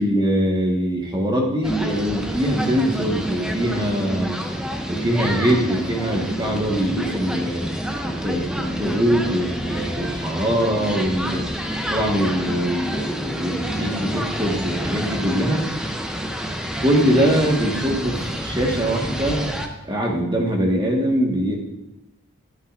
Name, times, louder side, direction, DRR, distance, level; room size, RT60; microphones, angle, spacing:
voice 1, 0.0-4.4 4.9-7.6 8.0-11.4 11.9-15.6 16.8-19.5 19.9-21.6, equal, 20° right, -1 dB, 1.4 m, -22 dB
sound 1, 1.6-19.7, equal, 5° right, 0.6 m, -28 dB
11.5 x 9.4 x 2.5 m, 0.98 s
head